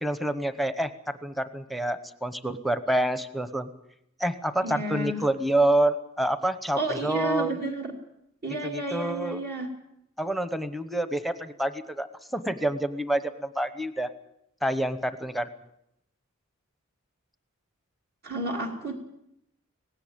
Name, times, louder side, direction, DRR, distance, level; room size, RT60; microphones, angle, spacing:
voice 1, 0.0-3.7 4.2-7.6 8.6-9.4 10.2-12.1 12.3-14.1 14.6-15.5, right 1 dB, ahead, 10 dB, 0.9 m, -27 dB
voice 2, 4.6-5.2 6.8-7.9 8.4-9.7 18.2-19.0, right 2 dB, 50° right, 1 dB, 2.6 m, -31 dB
18.5 x 16.5 x 8.7 m, 0.79 s
head